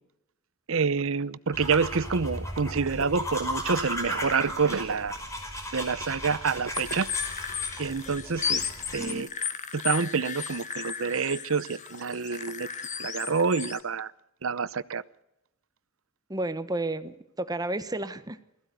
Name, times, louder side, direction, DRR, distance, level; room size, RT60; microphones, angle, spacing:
voice 1, 0.7-5.2 5.7-7.1 7.8-9.3 9.7-12.7 13.0-14.1 14.4-15.0, right 5 dB, 65° right, 18 dB, 0.8 m, -27 dB
sound 1, 1.5-9.1, left 1 dB, 15° left, 5.2 m, -36 dB
sound 2, 6.7-13.8, left 7 dB, 35° left, 1.5 m, -34 dB
voice 2, 9.0-9.3 16.3-18.4, right 2 dB, 20° right, 12 dB, 1.0 m, -32 dB
20.5 x 15.5 x 9.3 m, 0.89 s
head